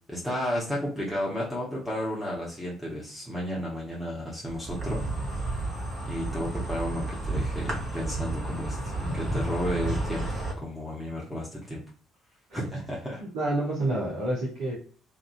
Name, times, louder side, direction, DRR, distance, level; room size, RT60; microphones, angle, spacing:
voice 1, 0.1-5.0 5.3-5.7 6.0-11.8 12.5-13.2, equal, 5° left, -6 dB, 0.8 m, -33 dB
Insect, 4.5-10.5, right 2 dB, 30° right, 1.1 m, -31 dB
voice 2, 13.3-14.7, right 1 dB, 60° right, -5 dB, 0.7 m, -28 dB
2.5 x 2.2 x 2.4 m, 0.43 s
figure-of-eight pair, 50°, 0 cm